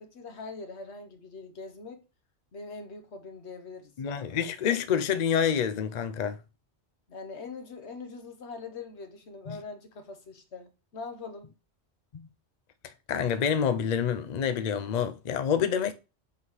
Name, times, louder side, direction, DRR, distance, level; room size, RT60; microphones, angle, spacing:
voice 1, 0.0-2.0 2.5-4.4 7.1-11.5, left 4 dB, 70° left, 1.2 m, -43 dB
voice 2, 4.0-6.4 9.5-9.6 12.1-12.3 13.1-15.9, left 8 dB, 55° left, 0.5 m, -27 dB
5.6 x 3.2 x 5.5 m
omnidirectional pair, 1.2 m